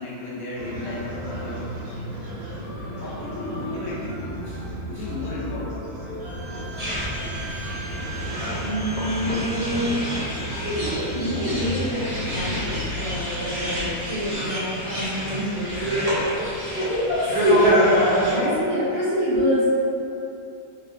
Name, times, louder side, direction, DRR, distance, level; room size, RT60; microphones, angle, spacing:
voice 1, 0.0-1.6 3.0-4.2 4.9-5.8, left 2 dB, 70° left, -8 dB, 1.0 m, -33 dB
sound 1, 0.6-13.2, equal, 90° right, 1.3 m, -34 dB
Bowed string instrument, 6.2-12.0, right 1 dB, 55° left, 0.5 m, -41 dB
sound 2, 6.8-18.4, equal, 65° right, 0.3 m, -27 dB
voice 2, 8.6-10.0 10.6-15.8 16.7-17.8 18.0-19.6, equal, 35° right, -14 dB, 1.3 m, -26 dB
3.2 x 2.6 x 2.5 m, 2.8 s
omnidirectional pair, 1.6 m